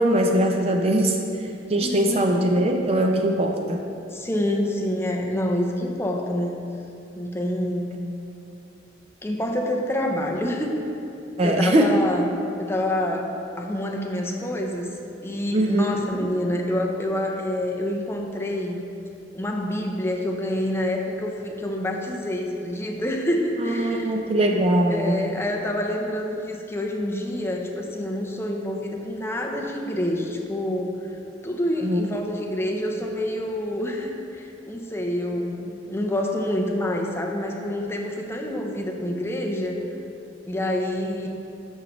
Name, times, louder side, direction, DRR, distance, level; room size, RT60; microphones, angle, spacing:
voice 1, 0.0-3.8 11.4-12.0 15.5-16.1 23.6-25.2 31.8-32.1, right 1 dB, 35° right, 3 dB, 0.5 m, -21 dB
voice 2, 1.8-2.2 4.1-6.6 7.2-8.0 9.2-10.8 11.4-12.3 12.6-14.9 15.2-18.8 19.3-24.2 24.9-31.2 31.4-39.8 40.4-41.3, left 1 dB, 15° left, 0 dB, 0.7 m, -27 dB
12.0 x 6.4 x 3.1 m, 2.7 s
head